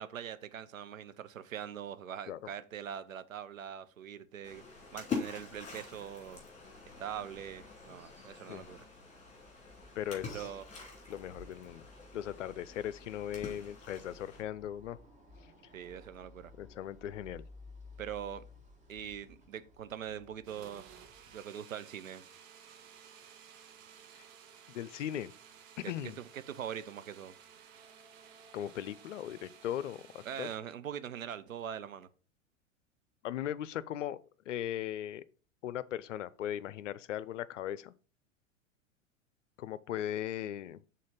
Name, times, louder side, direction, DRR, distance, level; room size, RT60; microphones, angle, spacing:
voice 1, 0.0-6.4 7.0-8.9 10.3-10.8 15.7-16.5 18.0-18.4 18.9-20.8 21.3-22.2 25.8-27.4 30.2-32.1, right 9 dB, 75° right, 0.7 m, -42 dB
Splash splatter, 4.4-14.4, left 5 dB, 15° left, 2.8 m, -45 dB
sound 1, 8.7-21.4, left 2 dB, 20° right, 1.8 m, -57 dB
voice 2, 10.0-10.5 11.1-11.9 12.1-15.0 16.6-17.4 24.7-25.3 25.9-26.2 28.5-30.5 33.2-34.2 34.5-35.2 35.6-37.9 39.6-40.8, left 11 dB, 65° left, 0.6 m, -38 dB
sound 2, 20.5-30.6, right 7 dB, 50° right, 1.1 m, -56 dB
6.3 x 3.8 x 5.4 m
figure-of-eight pair, 90°, 40 cm